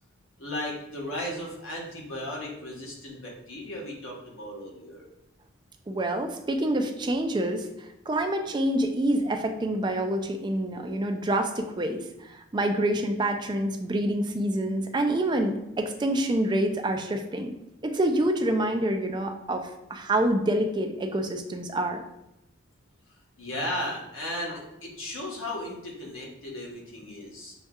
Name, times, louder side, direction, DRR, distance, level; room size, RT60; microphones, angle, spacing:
voice 1, 0.4-5.0 23.4-27.5, left 1 dB, 75° left, -3 dB, 1.2 m, -35 dB
voice 2, 5.9-17.5 17.8-22.0, right 1 dB, 20° right, 5 dB, 0.3 m, -27 dB
6.4 x 2.7 x 2.3 m, 0.89 s
head